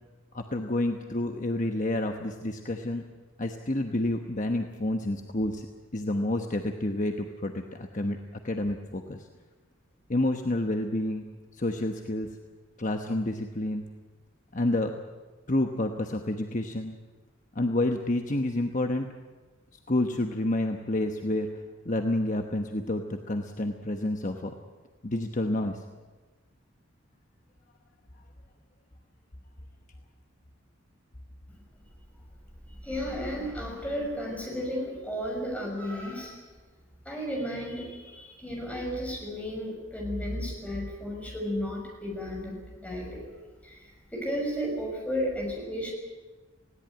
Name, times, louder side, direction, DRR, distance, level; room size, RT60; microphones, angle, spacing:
voice 1, 0.3-3.0 3.4-5.7 5.9-8.2 8.4-9.3 10.1-11.2 11.5-12.3 12.8-13.8 14.5-14.9 15.5-16.9 17.5-19.1 19.9-21.5 21.8-24.5 25.0-25.8, left 1 dB, 40° left, 4 dB, 1.1 m, -29 dB
voice 2, 32.7-36.4 37.0-43.3 43.6-45.9, equal, 5° left, -1 dB, 6.1 m, -33 dB
19.5 x 17.5 x 9.1 m, 1.3 s
head